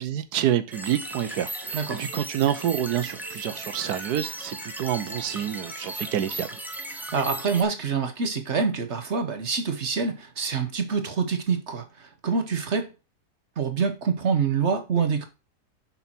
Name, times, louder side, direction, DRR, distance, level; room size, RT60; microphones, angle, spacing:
voice 1, 0.0-6.6, right 10 dB, 85° right, 1.3 m, -28 dB
sound 1, 0.7-7.6, right 1 dB, ahead, 0.8 m, -37 dB
voice 2, 6.9-12.9 13.6-15.2, right 5 dB, 50° right, 1.3 m, -26 dB
6.9 x 5.8 x 4.4 m
omnidirectional pair, 1.7 m